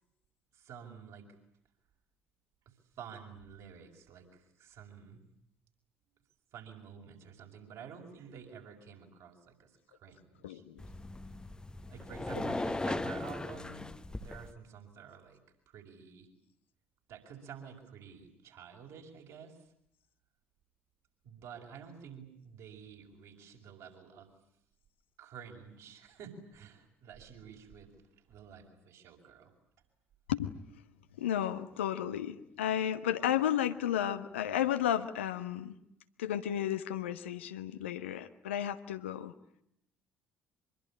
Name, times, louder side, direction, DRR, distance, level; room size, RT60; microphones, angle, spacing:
voice 1, 0.5-1.3 2.7-5.2 6.5-10.6 11.9-15.4 15.7-16.3 17.1-19.7 21.2-24.3 25.2-29.5, right 7 dB, 55° right, 1 dB, 5.7 m, -50 dB
voice 2, 10.4-10.8 30.3-30.5 31.2-35.7 36.2-39.3, left 10 dB, 75° left, 10 dB, 1.2 m, -33 dB
sound 1, 10.8-14.5, left 2 dB, 10° left, 1.3 m, -38 dB
24.5 x 22.5 x 10.0 m, 0.75 s
figure-of-eight pair, 55°, 7 cm